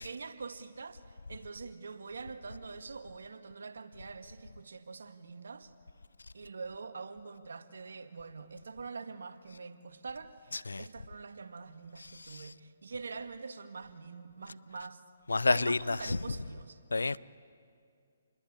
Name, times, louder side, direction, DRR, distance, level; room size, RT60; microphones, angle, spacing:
voice 1, 0.0-5.7 6.3-15.0 15.5-16.8, right 4 dB, 75° right, 1.8 m, -44 dB
voice 2, 15.3-16.0 16.9-17.2, left 3 dB, 90° left, 0.6 m, -28 dB
28.5 x 22.0 x 8.7 m
hypercardioid pair, 145°, 0 cm